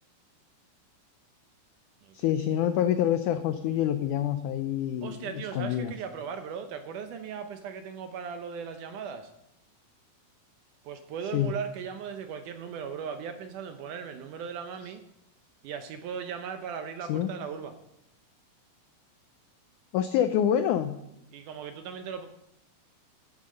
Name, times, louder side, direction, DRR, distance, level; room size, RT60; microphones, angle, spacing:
voice 1, 2.1-5.9 11.3-11.5 17.1-17.3 19.9-21.0, left 10 dB, 90° left, 9 dB, 1.7 m, -27 dB
voice 2, 5.0-9.3 10.8-15.0 15.6-17.7 21.3-22.3, right 7 dB, 75° right, 8 dB, 2.0 m, -38 dB
13.0 x 8.8 x 6.4 m, 0.85 s
omnidirectional pair, 4.3 m